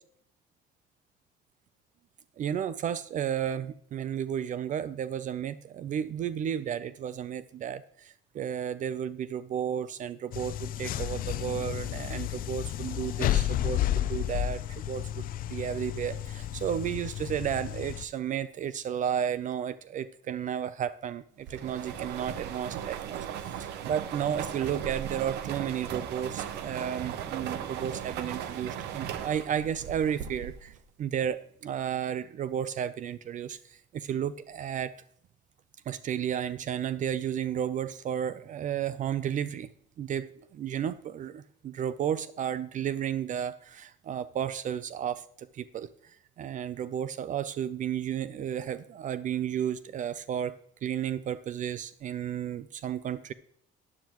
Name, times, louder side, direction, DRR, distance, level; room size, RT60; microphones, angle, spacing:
voice 1, 2.4-23.2 23.6-34.9 35.9-39.7 40.0-50.6 50.8-53.3, right 9 dB, 50° right, 16 dB, 0.5 m, -33 dB
sound 1, 10.3-18.0, left 12 dB, 55° left, 0.5 m, -32 dB
sound 2, 21.5-30.8, right 9 dB, 85° right, 0.9 m, -37 dB
12.0 x 9.7 x 3.0 m, 0.66 s
cardioid pair, 110°, 17 cm